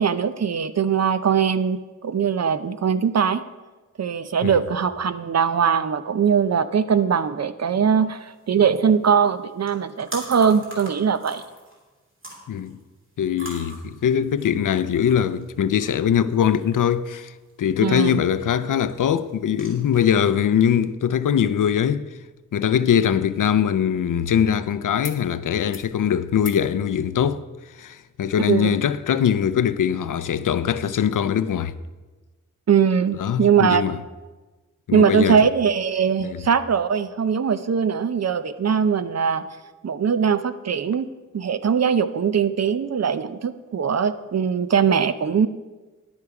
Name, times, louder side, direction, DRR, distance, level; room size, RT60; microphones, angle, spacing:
voice 1, 0.0-3.4 4.0-11.4 17.8-18.2 28.5-28.8 32.7-33.8 34.9-39.4 39.8-41.1 41.3-45.5, right 7 dB, 55° right, 0.5 m, -21 dB
sound 1, 8.2-20.9, right 1 dB, 40° right, 2.9 m, -44 dB
voice 2, 12.5-12.8 13.2-22.1 22.5-31.7 33.2-34.0 34.9-35.4 36.2-36.4, left 8 dB, 90° left, 0.5 m, -22 dB
sound 2, 25.0-25.2 25.5-25.9 26.4-26.7 28.0-28.1, left 5 dB, 40° left, 0.9 m, -42 dB
10.5 x 8.3 x 4.8 m
wide cardioid pair, 100°, 31 cm